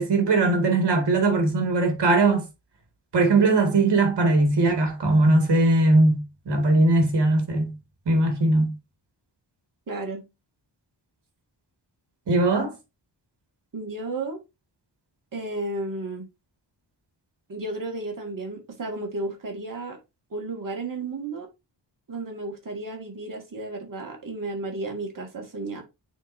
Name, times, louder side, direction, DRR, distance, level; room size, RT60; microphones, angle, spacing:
voice 1, 0.0-2.4 3.1-7.7 8.1-8.7 12.3-12.7, right 2 dB, 65° right, 2.0 m, -20 dB
voice 2, 9.9-10.3 13.7-14.4 15.3-16.3 17.5-20.0 20.3-21.5 22.1-25.8, right 2 dB, 45° right, 2.0 m, -33 dB
9.2 x 4.0 x 2.6 m
wide cardioid pair, 130°, 44 cm